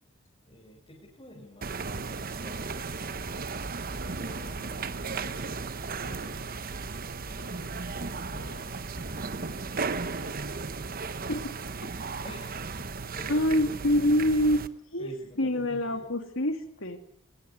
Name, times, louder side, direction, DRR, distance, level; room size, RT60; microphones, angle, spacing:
voice 1, 0.0-3.4 4.2-5.4 5.9-6.3 7.1-7.9 8.3-10.4 12.2-13.7 15.0-16.1, left 1 dB, 25° left, -2 dB, 4.6 m, -50 dB
sound 1, 1.6-14.7, right 4 dB, 45° right, 1.0 m, -35 dB
sound 2, 3.9-11.2, right 2 dB, 70° right, 2.9 m, -54 dB
voice 2, 13.3-14.6 14.9-15.1 15.4-17.0, equal, 70° left, 7 dB, 2.9 m, -26 dB
19.5 x 18.5 x 9.8 m, 0.67 s
head